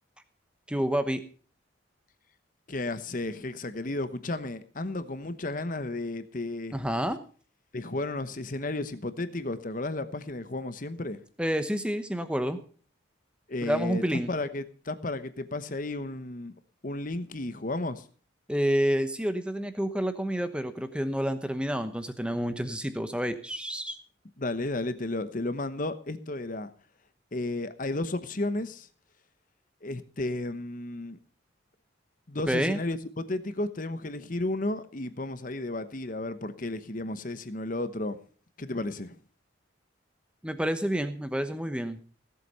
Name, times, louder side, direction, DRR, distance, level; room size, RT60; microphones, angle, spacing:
voice 1, 0.7-1.2 6.7-7.2 11.4-12.6 13.6-14.3 18.5-23.9 32.5-32.8 40.4-42.0, equal, 5° right, 1.0 m, -29 dB
voice 2, 2.7-6.8 7.7-11.2 13.5-16.5 16.8-18.0 24.4-26.7 27.3-28.9 29.8-31.2 32.3-38.2 38.6-39.2, left 2 dB, 40° left, 1.0 m, -33 dB
17.0 x 8.0 x 5.5 m
head